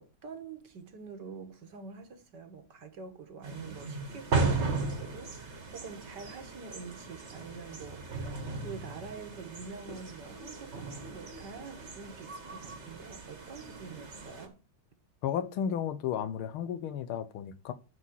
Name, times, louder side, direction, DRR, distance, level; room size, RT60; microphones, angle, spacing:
voice 1, 0.0-14.6, right 5 dB, 55° right, 1.8 m, -46 dB
sound 1, 3.4-14.5, right 3 dB, 35° right, 1.6 m, -36 dB
voice 2, 15.2-17.7, left 8 dB, 80° left, 1.7 m, -33 dB
9.7 x 4.2 x 7.3 m
omnidirectional pair, 2.3 m